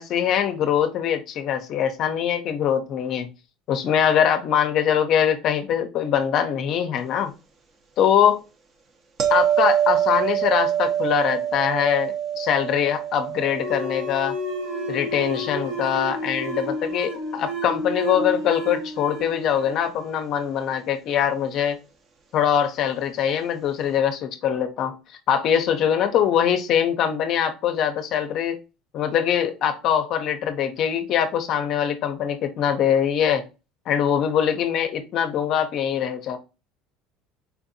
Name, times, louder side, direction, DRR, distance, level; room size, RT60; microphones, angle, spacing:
voice 1, 0.0-3.3 3.7-7.3 8.0-8.4 9.3-14.4 14.9-21.8 22.3-28.6 28.9-33.4 33.9-36.4, left 9 dB, 50° left, 0.5 m, -23 dB
sound 1, 9.2-16.2 21.4-21.6, right 10 dB, 35° right, 0.7 m, -26 dB
sound 2, 13.5-20.7, equal, 90° right, 1.9 m, -31 dB
4.4 x 2.6 x 2.5 m
cardioid pair, 125°, 0 cm